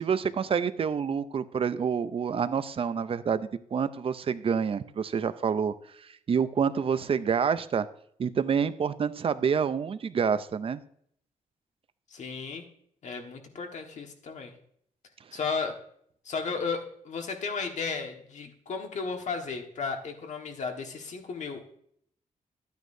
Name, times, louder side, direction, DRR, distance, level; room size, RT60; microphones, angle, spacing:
voice 1, 0.0-5.7 6.3-7.9 8.2-10.8, right 6 dB, 45° right, 13 dB, 0.5 m, -27 dB
voice 2, 12.1-12.7 13.0-14.5 15.3-15.8 16.2-21.6, left 5 dB, 60° left, 4 dB, 1.5 m, -34 dB
13.0 x 9.2 x 2.7 m, 0.67 s
wide cardioid pair, 130°, 14 cm